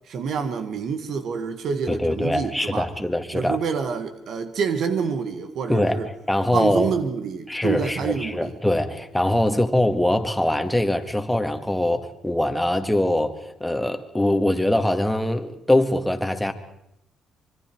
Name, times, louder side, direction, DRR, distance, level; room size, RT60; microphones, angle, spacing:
voice 1, 0.1-2.9 3.3-6.1 6.5-8.5 9.4-9.6, right 6 dB, 70° right, 1.8 m, -27 dB
voice 2, 1.9-3.6 5.7-6.0 6.3-6.9 7.5-16.5, left 1 dB, 5° left, 2.0 m, -23 dB
25.5 x 24.0 x 4.7 m
cardioid pair, 90°, 0 cm